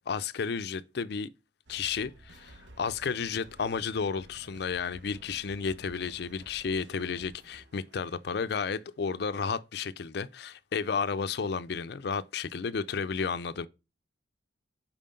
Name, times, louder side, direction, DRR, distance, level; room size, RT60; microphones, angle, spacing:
voice 1, 0.1-1.3 1.7-13.7, left 5 dB, 55° left, 0.4 m, -32 dB
sound 1, 1.7-8.8, right 1 dB, 65° right, 0.9 m, -54 dB
5.6 x 4.6 x 5.1 m
head